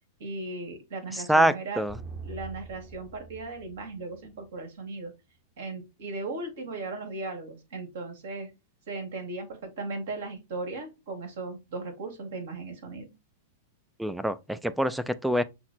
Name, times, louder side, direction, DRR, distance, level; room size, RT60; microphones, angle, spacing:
voice 1, 0.2-1.8 2.2-5.1 5.6-8.5 8.9-13.1, right 3 dB, 70° right, 1.8 m, -37 dB
voice 2, 1.3-1.9 14.0-15.4, right 1 dB, 5° right, 0.4 m, -25 dB
sound 1, 1.9-4.6, right 5 dB, 25° right, 0.9 m, -43 dB
5.9 x 2.0 x 4.0 m
hypercardioid pair, 115°, 0 cm